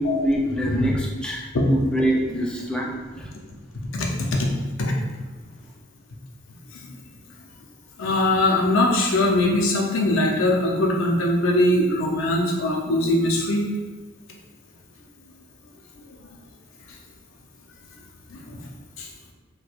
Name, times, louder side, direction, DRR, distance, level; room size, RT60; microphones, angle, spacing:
voice 1, 0.0-3.3, equal, 5° left, -2 dB, 0.4 m, -24 dB
voice 2, 3.9-4.5 4.8-4.9 6.7-6.9 8.0-13.7 18.3-18.6 19.0-19.1, left 1 dB, 75° left, -1 dB, 0.6 m, -21 dB
4.3 x 2.3 x 2.4 m, 1.3 s
head